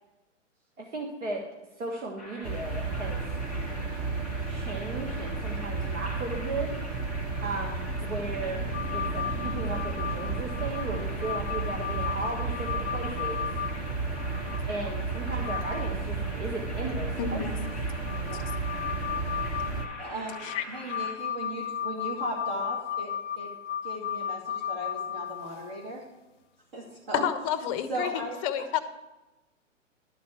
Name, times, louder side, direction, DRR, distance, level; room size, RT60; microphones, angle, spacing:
voice 1, 0.8-1.5 1.8-3.2 4.5-6.8 7.4-8.7 8.9-13.5 14.7-17.6, right 2 dB, 70° right, 0 dB, 1.6 m, -36 dB
sound 1, 2.2-21.1, left 1 dB, ahead, 2.2 m, -44 dB
sound 2, 2.4-19.9, right 4 dB, 25° right, 0.9 m, -33 dB
sound 3, 8.7-14.6 15.1-15.9 16.2-16.3 17.4-25.9 28.0-28.1, left 9 dB, 70° left, 0.5 m, -35 dB
voice 2, 17.2-17.6 18.6-18.7 20.4-20.6 27.1-28.8, left 9 dB, 25° left, 11 dB, 0.6 m, -30 dB
voice 3, 20.0-20.4 20.7-23.1 23.4-23.5 23.8-26.0 26.7-27.2 27.9-28.4, right 1 dB, 45° right, -3 dB, 1.9 m, -36 dB
11.5 x 4.2 x 7.2 m, 1.1 s
hypercardioid pair, 130°, 38 cm